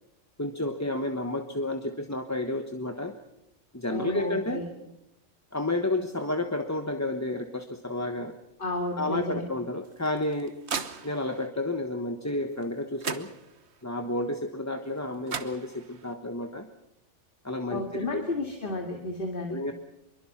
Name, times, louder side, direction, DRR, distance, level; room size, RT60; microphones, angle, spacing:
voice 1, 0.4-3.1 3.7-4.6 5.5-8.4 9.0-10.5 11.0-13.3 13.8-16.7 17.4-18.2 19.5-19.7, left 2 dB, 15° left, 5 dB, 1.2 m, -31 dB
voice 2, 3.9-4.7 8.6-9.5 17.7-19.6, left 2 dB, 45° left, 3 dB, 2.4 m, -32 dB
sound 1, 9.8-11.5 12.6-12.7 13.0-13.8 15.0-15.1 15.3-16.1, right 6 dB, 65° right, 1.4 m, -37 dB
26.0 x 23.0 x 6.0 m, 0.85 s
omnidirectional pair, 1.2 m